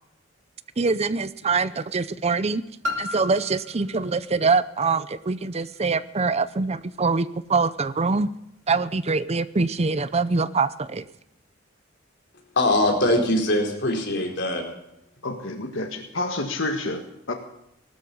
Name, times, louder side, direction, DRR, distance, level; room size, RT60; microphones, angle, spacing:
voice 1, 0.8-2.6 3.0-8.3 8.7-11.0, right 4 dB, 35° right, 15 dB, 0.6 m, -24 dB
Piano, 2.8-8.3 9.0-9.1, left 3 dB, 65° right, 2.6 m, -38 dB
voice 2, 12.6-14.6, left 1 dB, 60° left, 2 dB, 4.2 m, -22 dB
voice 3, 15.2-17.3, left 2 dB, 80° left, 4 dB, 1.8 m, -29 dB
19.5 x 13.0 x 5.5 m, 0.86 s
head